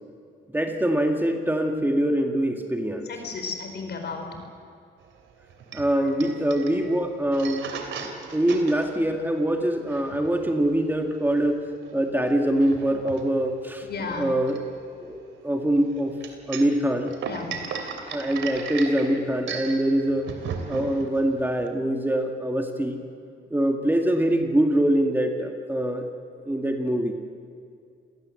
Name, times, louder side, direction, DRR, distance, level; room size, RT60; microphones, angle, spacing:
voice 1, 0.5-3.1 5.7-7.6 8.0-11.6 11.9-14.6 15.0-16.2 16.5-17.1 18.1-20.3 20.7-23.0 23.5-26.1 26.5-27.1, right 1 dB, 10° right, 3 dB, 2.1 m, -24 dB
voice 2, 3.1-4.4 5.9-6.1 13.8-14.3 17.2-17.7, left 4 dB, 55° left, 5 dB, 4.7 m, -34 dB
sound 1, 5.0-21.7, right 5 dB, 75° right, 3.1 m, -37 dB
27.5 x 18.5 x 7.8 m, 2.3 s
cardioid pair, 90°, 20 cm